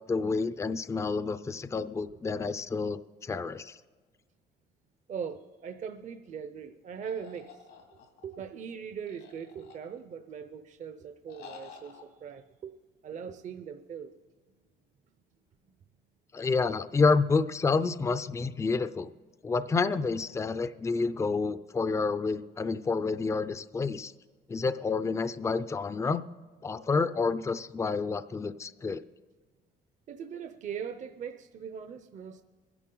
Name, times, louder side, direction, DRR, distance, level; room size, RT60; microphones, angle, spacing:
voice 1, 0.1-3.8 16.3-19.1 19.4-24.1 24.5-26.2 26.6-29.0, left 4 dB, 15° left, 0.4 m, -29 dB
voice 2, 5.1-7.6 8.2-12.7 13.0-14.1 30.1-32.4, right 7 dB, 45° right, 0.7 m, -40 dB
sound 1, 7.0-8.4 9.1-10.2 11.3-12.0, left 5 dB, 90° left, 2.6 m, -50 dB
23.5 x 11.0 x 3.9 m
cardioid pair, 110°, 17 cm